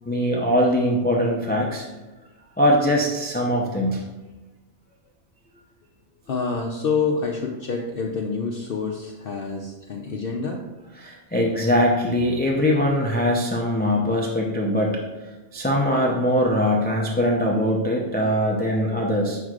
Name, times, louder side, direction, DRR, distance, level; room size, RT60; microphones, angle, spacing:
voice 1, 0.1-1.9 2.6-4.0 10.9-15.0 15.5-19.4, equal, 10° left, -1 dB, 0.5 m, -22 dB
voice 2, 6.3-10.6, left 4 dB, 60° left, 1 dB, 0.7 m, -27 dB
8.0 x 6.1 x 2.4 m, 1.2 s
omnidirectional pair, 1.2 m